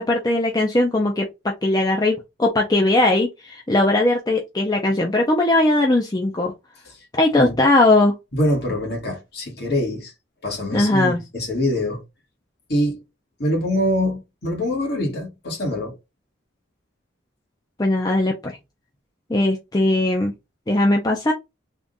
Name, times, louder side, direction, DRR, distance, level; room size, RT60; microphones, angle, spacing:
voice 1, 0.0-6.5 7.1-8.1 10.7-11.2 17.8-18.6 19.3-20.3 20.7-21.3, left 2 dB, 20° left, 0.5 m, -19 dB
voice 2, 8.3-10.1 10.4-12.0 12.7-13.0 13.4-16.0, left 1 dB, 55° left, 1.7 m, -24 dB
3.6 x 2.5 x 3.9 m
head